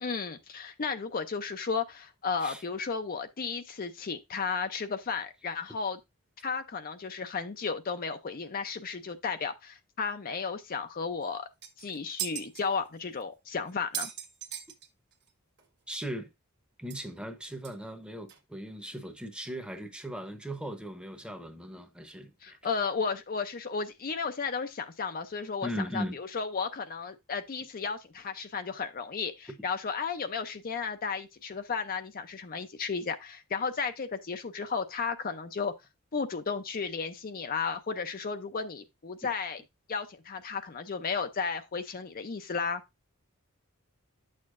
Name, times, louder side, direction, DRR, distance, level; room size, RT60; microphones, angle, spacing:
voice 1, 0.0-6.0 6.4-11.5 11.8-14.1 22.4-35.7 36.1-39.6 39.9-42.8, left 5 dB, 40° left, 0.5 m, -34 dB
sound 1, 11.2-11.3 11.6-12.6 13.2-13.3 13.7-15.3 15.6-15.7 15.9-16.0 16.9-17.0 17.6-17.7 18.3-18.4, right 10 dB, 50° right, 1.3 m, -38 dB
voice 2, 15.9-16.3 16.8-22.6 25.6-26.2, equal, 5° right, 0.9 m, -38 dB
9.5 x 6.5 x 2.5 m
head